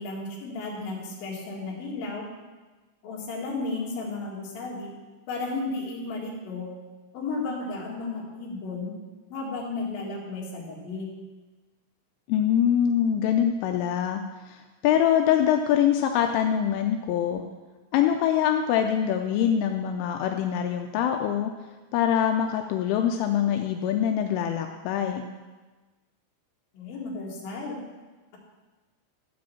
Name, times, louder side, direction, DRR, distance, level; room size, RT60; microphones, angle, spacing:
voice 1, 0.0-2.3 3.0-4.9 5.3-6.7 7.1-8.9 9.3-11.1 26.7-27.8, left 3 dB, 55° left, -3 dB, 3.3 m, -33 dB
voice 2, 12.3-17.4 17.9-21.5 21.9-25.2, left 9 dB, 85° left, 4 dB, 3.0 m, -24 dB
12.5 x 5.2 x 7.0 m, 1.3 s
omnidirectional pair, 5.7 m